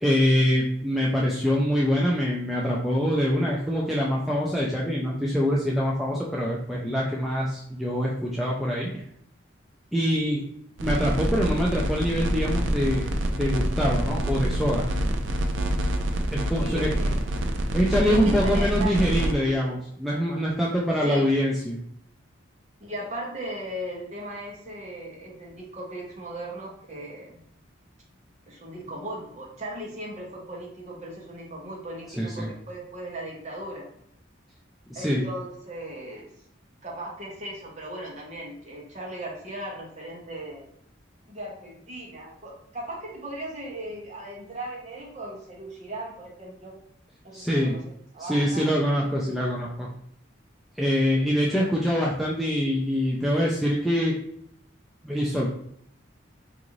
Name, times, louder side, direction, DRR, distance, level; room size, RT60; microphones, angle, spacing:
voice 1, 0.0-8.9 9.9-10.4 10.8-13.1 13.3-14.9 16.3-16.9 17.7-21.8 32.2-32.5 34.9-35.2 47.3-47.8 48.2-49.9 50.8-54.2 55.0-55.5, equal, ahead, -5 dB, 0.4 m, -24 dB
sound 1, 10.8-19.3, right 1 dB, 70° right, 0.4 m, -26 dB
voice 2, 16.6-17.3 18.1-19.3 21.0-21.3 22.8-27.4 28.5-33.9 34.9-36.3 36.8-40.7 41.3-46.8 47.2-47.8 48.1-48.7, right 1 dB, 35° right, -2 dB, 0.9 m, -37 dB
3.8 x 2.5 x 3.0 m, 0.70 s
head